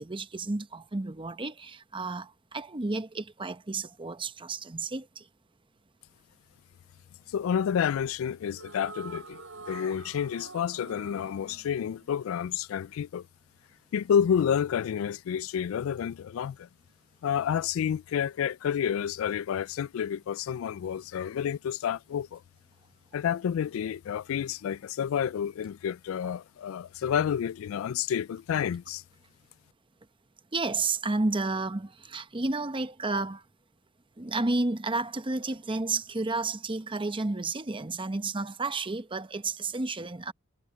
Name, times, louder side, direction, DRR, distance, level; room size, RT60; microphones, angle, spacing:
voice 1, 0.0-5.3 30.5-33.4 34.2-40.3, right 3 dB, 25° right, 0.8 m, -31 dB
voice 2, 7.3-9.4 9.7-13.3 13.9-16.7 17.2-22.4 23.1-29.0, left 8 dB, 90° left, 0.3 m, -29 dB
sound 1, 8.5-12.9, right 4 dB, 75° right, 7.1 m, -46 dB
head